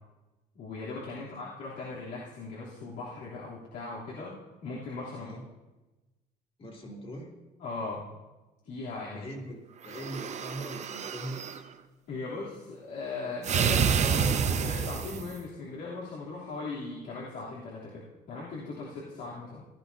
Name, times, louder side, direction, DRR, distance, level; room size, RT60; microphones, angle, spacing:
voice 1, 0.5-4.3 4.6-5.3 7.6-8.0 8.6-9.3 12.1-19.7, left 3 dB, 80° left, -8 dB, 3.2 m, -38 dB
voice 2, 6.6-7.3 9.1-11.4, right 1 dB, 35° left, 0 dB, 2.9 m, -41 dB
sound 1, 9.8-11.6 13.4-15.4, right 7 dB, 45° right, 0.7 m, -28 dB
17.0 x 11.5 x 2.8 m, 1.1 s
cardioid pair, 110°, 17 cm